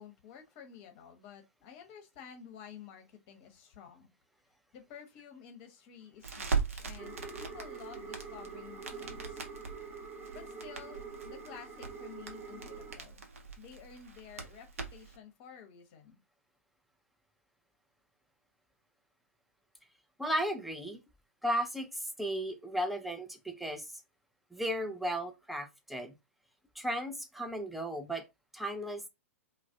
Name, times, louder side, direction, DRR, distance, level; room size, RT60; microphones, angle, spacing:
voice 1, 0.0-4.1 4.7-9.4 9.8-13.2 13.6-16.2, left 8 dB, 40° left, 0.7 m, -52 dB
Crackle, 6.2-15.2, right 5 dB, 70° right, 0.6 m, -40 dB
sound 1, 7.0-13.0, right 5 dB, 20° right, 0.9 m, -45 dB
voice 2, 20.2-21.0 21.4-23.9 24.5-26.1 26.8-28.3 28.5-29.1, equal, ahead, 0.4 m, -35 dB
2.3 x 2.0 x 2.6 m
figure-of-eight pair, 105°, 8 cm